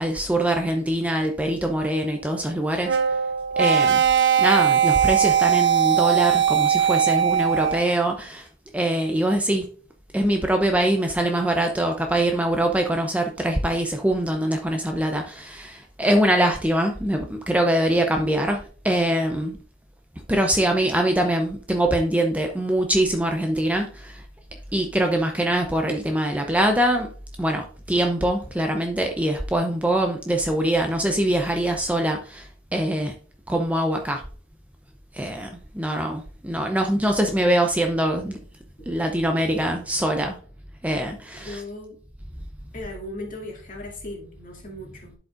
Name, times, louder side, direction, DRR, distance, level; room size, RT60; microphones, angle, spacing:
voice 1, 0.0-3.0 3.6-4.0 4.4-8.4 8.7-9.6 10.1-19.6 20.3-24.2 24.7-27.1 27.4-32.5 32.7-33.1 33.5-34.2 35.1-35.5 35.7-38.4 38.9-40.4 40.8-41.6, right 1 dB, 5° right, 3 dB, 0.6 m, -23 dB
sound 1, 2.8-7.9, right 8 dB, 60° right, 0.8 m, -20 dB
voice 2, 41.4-42.0 42.7-45.1, left 1 dB, 40° left, 0 dB, 2.2 m, -37 dB
11.5 x 4.9 x 2.5 m, 0.43 s
head